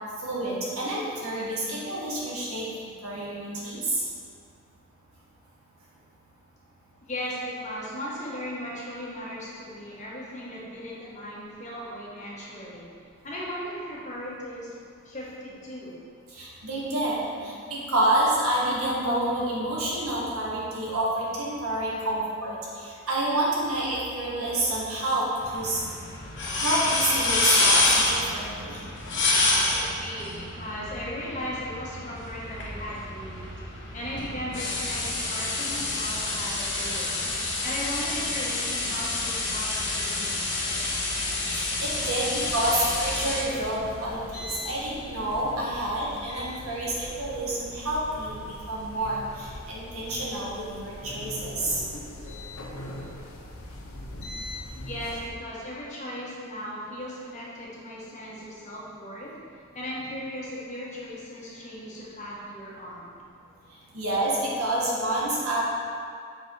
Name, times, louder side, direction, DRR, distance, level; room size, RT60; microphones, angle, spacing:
voice 1, 0.2-2.7 3.0-4.0 16.3-25.3 25.5-25.8 26.6-28.8 41.4-51.8 63.9-65.6, right 1 dB, 80° right, -5 dB, 1.7 m, -28 dB
voice 2, 7.0-12.9 13.2-14.8 15.0-16.0 21.9-22.0 29.7-33.5 33.9-37.2 37.6-40.3 40.6-41.1 54.8-59.4 59.7-63.2, equal, 30° left, -5 dB, 1.3 m, -37 dB
sound 1, 25.4-43.4, left 2 dB, 50° left, 1.3 m, -28 dB
sound 2, 41.8-55.3, left 1 dB, 75° left, 0.8 m, -41 dB
7.2 x 4.7 x 4.7 m, 2.3 s
head